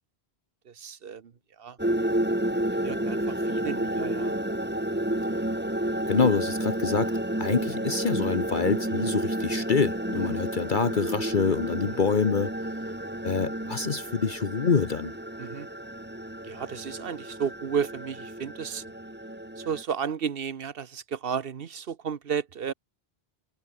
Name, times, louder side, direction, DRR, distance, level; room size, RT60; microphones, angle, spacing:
voice 1, 0.7-1.3 1.6-1.8 2.8-4.3 10.2-10.4 11.9-12.0 15.4-15.7 16.4-18.8 19.6-22.7, right 7 dB, 65° right, 1.1 m, -33 dB
sound 1, 1.8-19.8, right 1 dB, 10° right, 2.0 m, -31 dB
voice 2, 6.1-7.1 7.4-12.5 13.2-15.1, left 5 dB, 50° left, 1.3 m, -26 dB
omnidirectional pair, 1.1 m